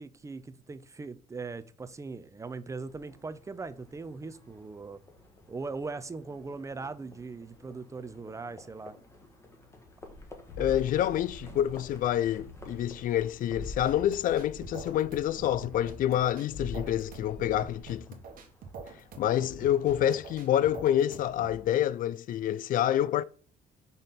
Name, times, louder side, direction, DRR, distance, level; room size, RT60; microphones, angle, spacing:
voice 1, 0.0-5.0 5.5-9.0, right 4 dB, 20° right, 0.6 m, -40 dB
Livestock farm animals working animals, 2.8-21.8, left 1 dB, 15° left, 1.4 m, -55 dB
sound 1, 10.0-17.8, left 2 dB, 70° left, 1.6 m, -45 dB
voice 2, 10.6-18.1 19.2-23.2, left 11 dB, 55° left, 0.4 m, -27 dB
sound 2, 13.6-21.6, right 4 dB, 55° right, 1.4 m, -46 dB
5.3 x 4.0 x 5.8 m
cardioid pair, 110°, 17 cm